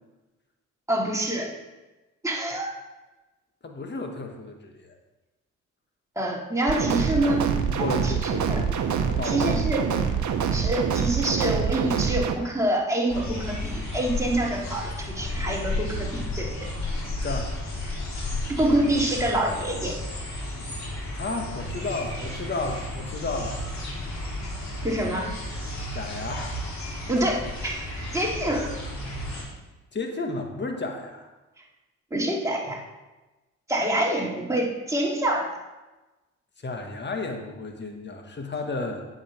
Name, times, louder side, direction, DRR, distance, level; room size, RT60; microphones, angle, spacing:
voice 1, 0.9-1.5 2.2-2.7 6.1-7.5 8.0-8.6 9.2-9.9 10.5-16.5 18.5-19.9 24.8-25.3 27.1-27.9 28.1-28.8 32.1-32.8 33.7-35.5, right 1 dB, 10° right, -3 dB, 3.1 m, -26 dB
voice 2, 3.6-5.0 7.7-8.8 9.1-9.7 17.2-17.5 21.1-23.6 25.9-26.6 29.9-31.3 36.6-39.0, left 3 dB, 35° left, 3 dB, 1.7 m, -32 dB
sound 1, 6.7-12.3, right 7 dB, 65° right, 1.1 m, -25 dB
sound 2, 13.1-29.4, left 1 dB, 55° left, 3.9 m, -33 dB
8.6 x 5.8 x 7.2 m, 1.1 s
supercardioid pair, 60°, 32 cm